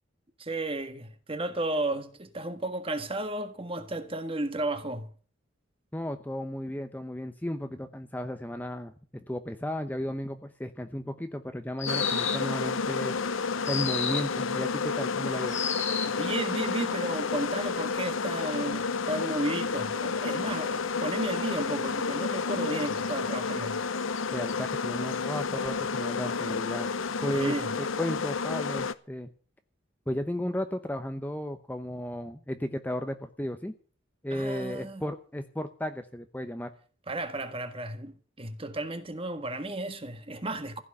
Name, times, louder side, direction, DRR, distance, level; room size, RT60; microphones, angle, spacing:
voice 1, 0.4-5.1 16.0-23.8 27.3-27.7 34.3-35.0 37.1-40.8, right 2 dB, 30° right, 1.6 m, -33 dB
voice 2, 5.9-13.1 13.7-15.6 24.3-26.9 27.2-27.5 28.0-29.3 30.1-33.7 34.2-36.7, left 1 dB, 10° left, 0.8 m, -34 dB
sound 1, 11.8-12.6 13.6-14.4 15.5-16.2, left 7 dB, 35° left, 2.1 m, -31 dB
sound 2, 11.9-28.9, left 5 dB, 80° left, 0.8 m, -30 dB
15.5 x 6.1 x 9.9 m
head